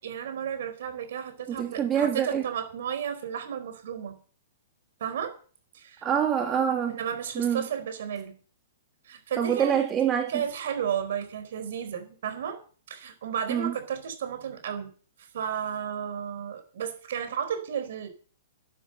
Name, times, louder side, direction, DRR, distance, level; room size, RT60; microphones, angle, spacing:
voice 1, 0.0-4.2 5.0-5.4 5.7-6.1 6.9-8.3 9.0-9.8 10.3-12.6 12.9-14.9 15.2-18.1, right 8 dB, 65° right, 9 dB, 4.6 m, -33 dB
voice 2, 1.5-2.4 6.0-7.0 7.4-7.7 9.4-10.4 13.5-13.7, right 8 dB, 20° right, 3 dB, 2.2 m, -26 dB
12.0 x 10.5 x 6.8 m, 0.39 s
hypercardioid pair, 130°, 0 cm